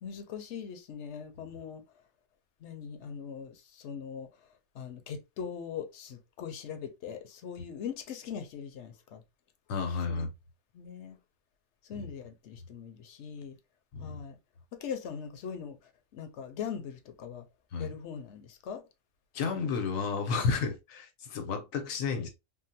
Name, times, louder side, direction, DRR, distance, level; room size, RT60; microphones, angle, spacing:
voice 1, 0.0-1.8 2.6-4.3 4.7-9.2 10.1-10.3 10.7-11.2 11.8-13.6 14.0-14.4 14.7-17.5 17.8-18.8, left 7 dB, 65° left, 0.9 m, -41 dB
voice 2, 9.7-10.3 12.0-12.1 13.9-14.2 17.7-17.9 19.3-22.3, left 5 dB, 85° left, 1.2 m, -32 dB
3.6 x 2.0 x 2.7 m
omnidirectional pair, 1.4 m